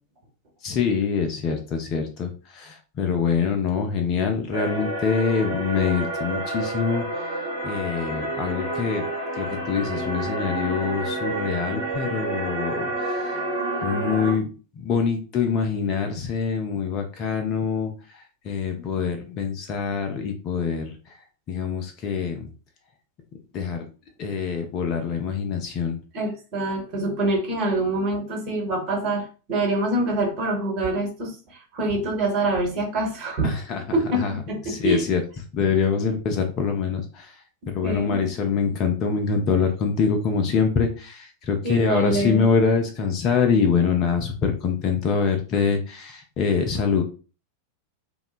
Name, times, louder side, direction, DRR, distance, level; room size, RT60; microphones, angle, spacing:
voice 1, 0.6-7.3 7.6-9.1 9.3-13.4 13.8-14.5 14.8-20.9 21.5-22.5 23.5-23.9 24.2-26.0 33.4-33.8 34.1-34.4 34.6-35.2 35.5-37.3 37.7-47.0, left 6 dB, 35° left, 4 dB, 0.4 m, -25 dB
sound 1, 4.5-14.3, right 1 dB, 75° right, 0.9 m, -29 dB
voice 2, 26.1-33.5 33.9-34.6 34.8-35.0 37.8-38.3 41.6-42.4, right 2 dB, 40° right, 0 dB, 1.0 m, -25 dB
2.8 x 2.1 x 2.3 m, 0.35 s
figure-of-eight pair, 90°, 0 cm